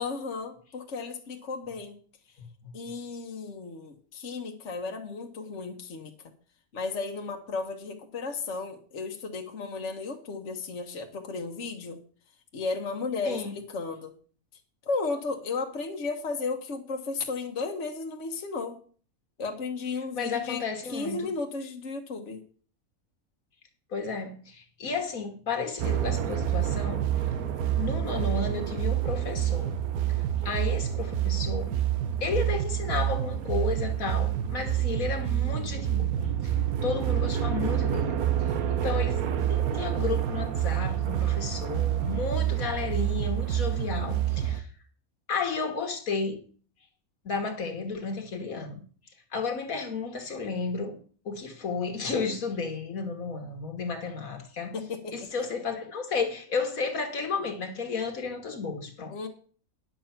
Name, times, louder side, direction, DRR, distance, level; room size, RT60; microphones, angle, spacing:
voice 1, 0.0-2.0 2.7-6.1 6.7-12.0 12.5-14.1 14.8-18.8 19.4-20.6 20.9-22.4 54.7-55.5 59.1-59.3, left 4 dB, 55° left, 1.5 m, -34 dB
voice 2, 20.2-21.3 23.9-27.0 27.8-29.8 30.1-31.8 32.2-36.5 36.8-38.2 38.7-44.7 45.3-46.4 47.3-48.8 49.3-51.0 51.3-54.7 55.1-59.2, left 4 dB, 70° left, 2.0 m, -33 dB
sound 1, 25.8-44.6, right 11 dB, 85° right, 1.4 m, -28 dB
10.0 x 7.3 x 5.7 m
omnidirectional pair, 1.5 m